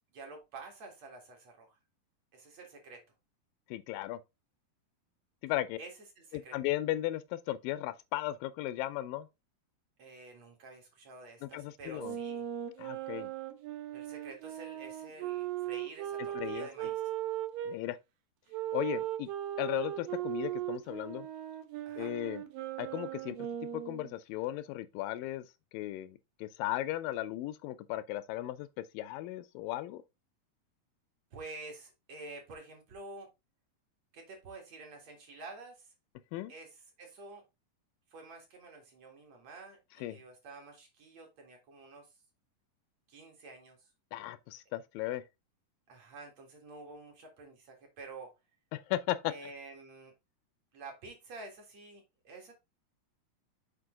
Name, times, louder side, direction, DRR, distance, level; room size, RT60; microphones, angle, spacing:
voice 1, 0.1-1.8 2.3-3.0 5.8-6.6 10.0-12.5 13.9-17.0 21.9-22.2 31.3-33.3 34.1-35.9 36.5-37.4 38.1-42.1 43.1-43.9 45.9-48.3 49.3-50.1 50.7-52.5, right 3 dB, 55° right, 2.7 m, -49 dB
voice 2, 3.7-4.2 5.4-5.8 6.3-9.3 11.4-12.2 12.8-13.3 16.4-16.7 17.7-18.0 18.7-19.3 19.6-21.3 22.0-22.4 22.8-23.4 23.7-25.5 25.7-30.0 36.3-36.5 40.0-40.2 44.1-45.2 48.7-49.3, left 15 dB, 85° left, 2.2 m, -36 dB
sound 1, 12.0-17.8 18.5-24.1, right 12 dB, 80° right, 2.6 m, -38 dB
6.9 x 5.1 x 3.7 m
omnidirectional pair, 4.0 m